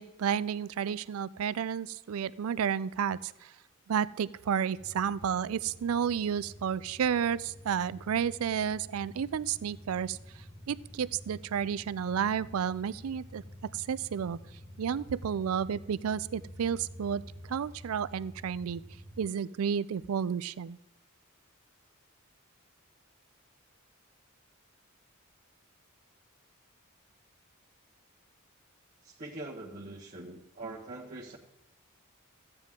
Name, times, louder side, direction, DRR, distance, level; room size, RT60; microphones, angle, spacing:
voice 1, 0.0-3.5 3.9-10.2 10.7-13.4 13.7-14.4 14.8-17.2 17.5-18.8 19.2-20.8, right 8 dB, 80° right, 18 dB, 0.4 m, -31 dB
sound 1, 4.7-19.2, equal, 10° left, 1.2 m, -49 dB
voice 2, 29.0-31.4, right 2 dB, 40° right, -5 dB, 1.2 m, -43 dB
14.5 x 9.1 x 3.7 m, 0.93 s
head